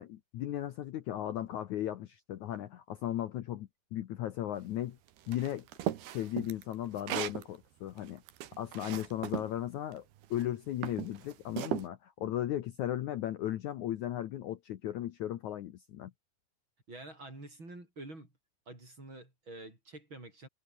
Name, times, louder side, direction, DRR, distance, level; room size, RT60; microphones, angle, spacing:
voice 1, 0.0-5.0 5.3-5.7 6.1-8.2 8.6-10.0 10.3-16.1, left 12 dB, 70° left, 1.9 m, -36 dB
sound 1, 5.3-7.4 8.0-9.5 10.2-10.4 10.8-11.9, right 12 dB, 75° right, 3.5 m, -37 dB
voice 2, 16.9-18.3 18.7-20.5, right 2 dB, 30° right, 8.8 m, -48 dB
omnidirectional pair, 4.6 m